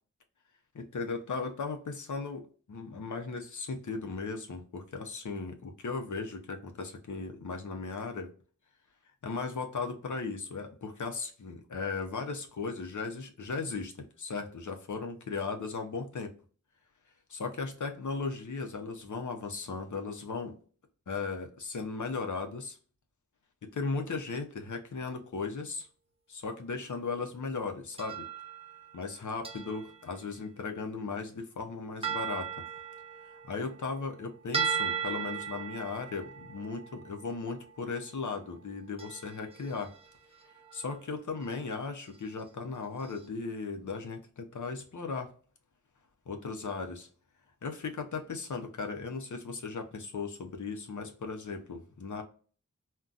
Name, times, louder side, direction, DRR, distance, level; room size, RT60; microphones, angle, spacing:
voice 1, 0.7-8.3 9.2-16.3 17.3-20.5 21.1-22.8 23.6-25.9 26.3-28.3 28.9-32.6 33.3-39.9 40.7-45.3 46.3-47.1 47.6-52.2, left 4 dB, 70° left, 0.6 m, -37 dB
sound 1, 28.0-29.1 29.4-30.1 32.0-34.2 34.5-37.7 39.0-40.1 40.3-40.9 41.4-41.5 42.0-42.2 43.0-43.1, right 7 dB, 20° right, 0.6 m, -37 dB
3.8 x 2.2 x 2.3 m
wide cardioid pair, 45°, 31 cm